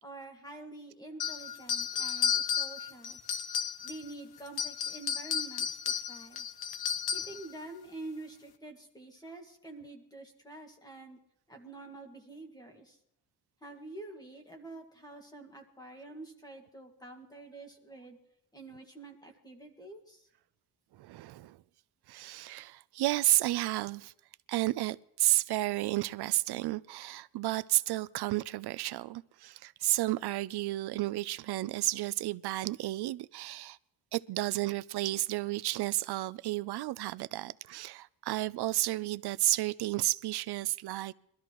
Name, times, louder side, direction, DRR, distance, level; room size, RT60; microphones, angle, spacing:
voice 1, 0.0-3.2 3.8-6.5 7.1-11.2 11.5-13.0 13.6-18.2 18.5-20.3, right 2 dB, 10° left, 1.8 m, -47 dB
sound 1, 1.2-4.1 4.5-7.4, left 7 dB, 75° left, 1.0 m, -33 dB
voice 2, 21.0-21.6 22.1-24.1 24.5-33.8 34.1-41.1, right 16 dB, 85° right, 0.5 m, -32 dB
23.0 x 13.0 x 3.0 m
wide cardioid pair, 175°, 38 cm